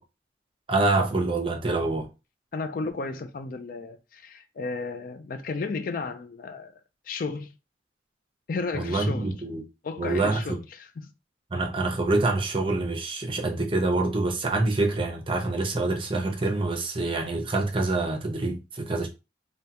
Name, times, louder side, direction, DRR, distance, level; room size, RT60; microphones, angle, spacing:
voice 1, 0.7-2.1 8.7-9.6 10.0-10.6 11.5-19.1, right 2 dB, 30° right, 0.6 m, -26 dB
voice 2, 2.5-6.8 7.1-7.5 8.5-9.4 9.8-10.9, left 4 dB, 50° left, 0.3 m, -33 dB
3.4 x 2.2 x 2.8 m
head